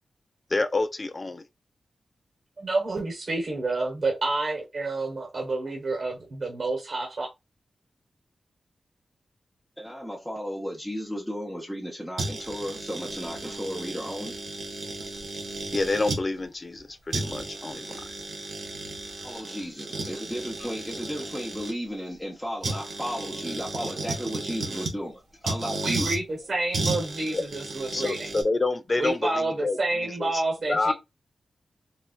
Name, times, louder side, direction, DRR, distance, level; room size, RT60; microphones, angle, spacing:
voice 1, 0.5-1.4 15.7-18.1 27.3-27.4 27.9-30.4 30.7-30.9, left 3 dB, 35° left, 0.5 m, -28 dB
voice 2, 2.6-7.3 25.8-28.3 29.0-30.9, right 2 dB, 60° right, 1.3 m, -29 dB
voice 3, 9.8-14.4 19.2-26.1, equal, ahead, 0.9 m, -34 dB
sound 1, 12.2-16.2 16.8-16.9 17.1-21.7 22.6-25.0 25.4-26.2 26.7-28.4, right 3 dB, 85° right, 1.0 m, -34 dB
4.1 x 2.3 x 2.4 m
cardioid pair, 75°, 0 cm